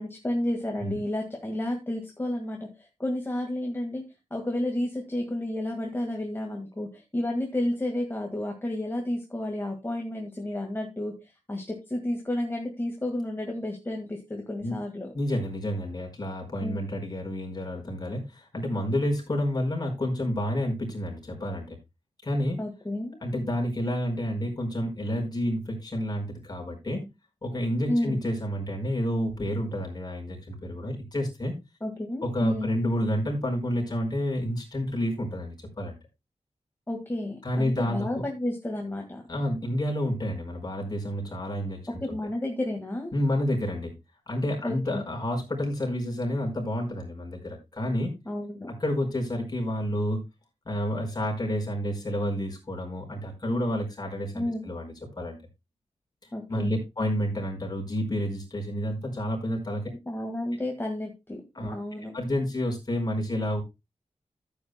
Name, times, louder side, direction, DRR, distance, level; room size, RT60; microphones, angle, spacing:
voice 1, 0.0-4.0 4.3-11.1 11.5-15.1 16.6-16.8 22.6-23.2 27.9-28.2 31.8-32.8 36.9-39.2 42.0-43.1 44.6-45.0 48.3-48.7 54.3-54.7 56.3-56.7 60.1-62.1, left 1 dB, 20° left, 1 dB, 1.8 m, -31 dB
voice 2, 15.1-21.8 22.2-22.6 23.2-27.1 27.4-31.5 32.2-36.0 37.4-38.2 39.3-42.2 43.1-43.9 44.3-48.1 48.8-50.2 50.6-55.4 56.2-59.8 61.5-61.7 62.1-63.6, equal, 35° left, 0 dB, 4.6 m, -29 dB
14.5 x 8.5 x 2.2 m, 0.23 s
wide cardioid pair, 120°, 12 cm